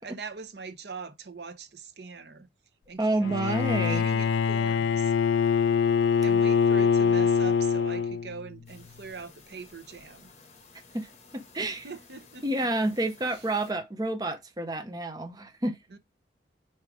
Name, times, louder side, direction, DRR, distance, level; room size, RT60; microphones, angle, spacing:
voice 1, 0.0-2.5 2.9-5.1 6.2-10.3 11.6-12.4 15.9-16.0, right 4 dB, 60° right, 0.8 m, -42 dB
voice 2, 3.0-4.1 10.9-11.9 12.4-15.8, right 2 dB, 20° right, 0.6 m, -29 dB
Bowed string instrument, 3.2-8.5, left 6 dB, 70° left, 0.3 m, -24 dB
sound 1, 8.7-13.7, left 4 dB, 35° left, 1.5 m, -54 dB
5.1 x 4.3 x 4.8 m
head